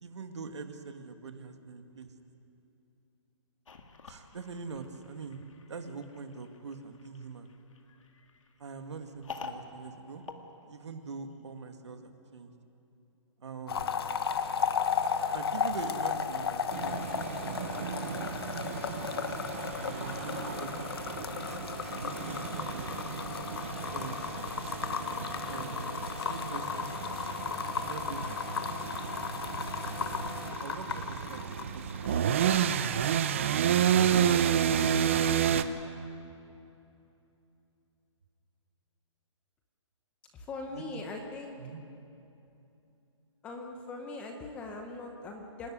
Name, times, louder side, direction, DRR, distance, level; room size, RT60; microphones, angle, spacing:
voice 1, 0.0-2.1 4.1-5.4 5.7-7.5 8.6-10.2 10.7-12.5 13.4-13.9 15.3-18.6 19.0-19.1 19.8-21.5 21.9-23.2 23.9-24.2 25.3-25.7 26.1-26.9 27.7-28.2 30.6-33.0 40.7-41.0 41.6-41.8, right 4 dB, 65° right, 6 dB, 2.0 m, -44 dB
sound 1, 3.6-11.3, left 4 dB, 85° left, 2.1 m, -49 dB
sound 2, 13.7-32.6 32.9-33.3, left 6 dB, 50° left, 1.2 m, -35 dB
sound 3, 16.7-35.6, right 9 dB, 25° right, 0.6 m, -31 dB
voice 2, 40.3-41.6 43.4-45.7, left 3 dB, 10° left, 3 dB, 0.8 m, -41 dB
27.5 x 12.5 x 9.5 m, 2.8 s
hypercardioid pair, 170°, 16 cm